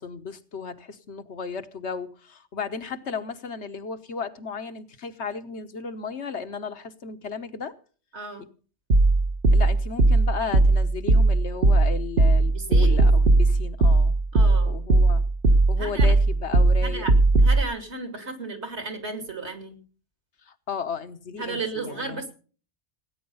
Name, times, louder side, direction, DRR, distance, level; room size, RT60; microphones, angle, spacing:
voice 1, 0.0-7.7 9.5-14.2 14.7-15.2 15.7-17.1 20.5-22.2, left 5 dB, 75° left, 9 dB, 1.4 m, -34 dB
voice 2, 8.1-8.5 12.4-13.1 14.3-14.9 15.8-16.1 16.8-19.8 21.3-22.3, right 3 dB, 75° right, 6 dB, 3.0 m, -34 dB
sound 1, 8.9-17.6, right 2 dB, 60° right, 1.3 m, -18 dB
17.5 x 9.8 x 5.5 m, 0.40 s
omnidirectional pair, 1.2 m